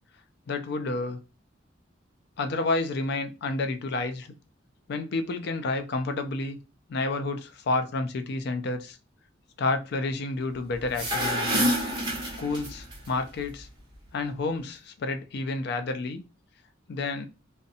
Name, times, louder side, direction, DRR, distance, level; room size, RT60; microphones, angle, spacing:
voice 1, 0.5-1.2 2.4-4.3 4.9-6.6 6.9-9.0 9.6-11.7 12.4-13.7 14.1-16.2 16.9-17.3, left 3 dB, 60° left, 0.4 m, -30 dB
sound 1, 10.8-12.9, equal, 25° right, 0.9 m, -27 dB
2.6 x 2.1 x 2.5 m
head